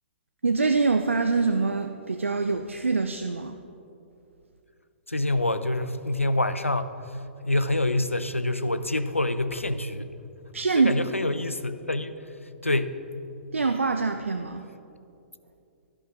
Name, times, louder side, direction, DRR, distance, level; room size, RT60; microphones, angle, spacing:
voice 1, 0.4-3.6 10.5-10.9 13.5-14.6, right 4 dB, 75° right, 7 dB, 0.5 m, -24 dB
voice 2, 5.1-6.9 7.4-10.1 10.7-12.2 12.6-12.9, left 2 dB, 85° left, 12 dB, 0.5 m, -26 dB
11.5 x 11.0 x 3.6 m, 2.7 s
figure-of-eight pair, 120°, 7 cm